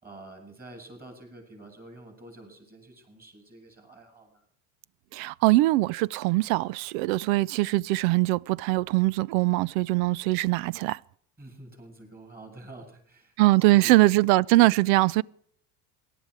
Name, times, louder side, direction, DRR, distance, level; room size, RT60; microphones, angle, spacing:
voice 1, 0.0-4.4 11.4-13.4 13.7-14.1, right 2 dB, 20° right, 6.8 m, -48 dB
voice 2, 5.1-11.0 13.4-15.2, right 19 dB, 70° right, 0.5 m, -22 dB
18.0 x 11.5 x 4.8 m
supercardioid pair, 85°, 43 cm